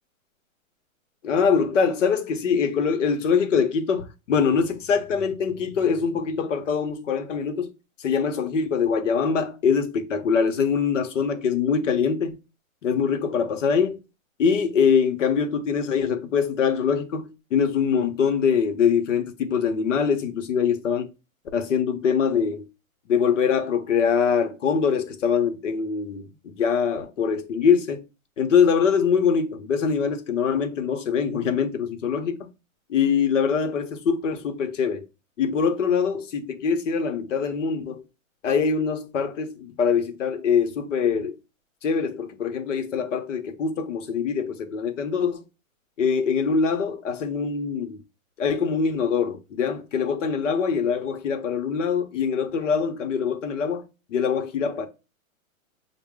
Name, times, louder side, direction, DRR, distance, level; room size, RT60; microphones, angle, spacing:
voice 1, 1.2-7.7 8.0-12.3 12.8-14.0 14.4-21.1 21.5-22.7 23.1-28.0 28.4-32.5 32.9-35.1 35.4-38.0 38.4-41.4 41.8-45.4 46.0-48.0 48.4-53.8 54.1-54.9, left 6 dB, 60° left, 0.9 m, -23 dB
5.8 x 2.1 x 3.6 m
hypercardioid pair, 175°, 42 cm